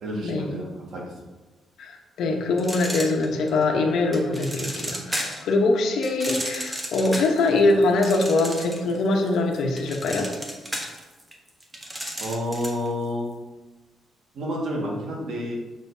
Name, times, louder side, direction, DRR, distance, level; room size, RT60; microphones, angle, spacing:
voice 1, 0.0-1.1 12.2-13.4 14.3-15.6, left 1 dB, 65° right, -2 dB, 1.7 m, -29 dB
voice 2, 1.8-10.3, left 2 dB, 75° left, 2 dB, 0.9 m, -23 dB
sound 1, 2.6-3.6 4.1-5.5 6.0-9.0 9.3-12.9, equal, 10° right, 0.9 m, -33 dB
6.5 x 6.4 x 2.7 m, 1.2 s
cardioid pair, 125°, 0 cm